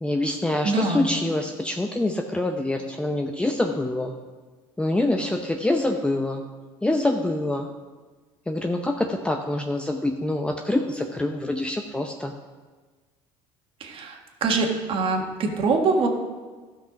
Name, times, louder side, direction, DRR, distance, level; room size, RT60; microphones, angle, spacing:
voice 1, 0.0-4.1 4.8-6.4 6.8-7.7 8.5-12.3, left 2 dB, 10° left, 3 dB, 0.7 m, -25 dB
voice 2, 0.6-1.1 13.8-16.1, right 3 dB, 50° right, 3 dB, 1.6 m, -24 dB
13.0 x 5.7 x 5.1 m, 1.4 s
supercardioid pair, 90°, 11 cm